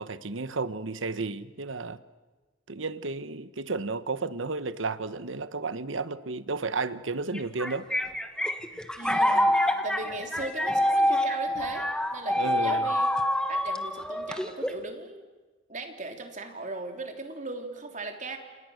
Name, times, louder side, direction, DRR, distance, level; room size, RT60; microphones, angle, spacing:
voice 1, 0.0-2.0 2.7-7.9 12.4-12.9, right 3 dB, 80° right, 1.2 m, -32 dB
sound 1, 7.3-14.9, left 1 dB, 5° left, 1.4 m, -26 dB
voice 2, 9.0-11.9 12.1-13.1 13.5-15.3 15.7-18.4, right 2 dB, 40° right, 3.6 m, -38 dB
28.5 x 28.5 x 6.6 m
head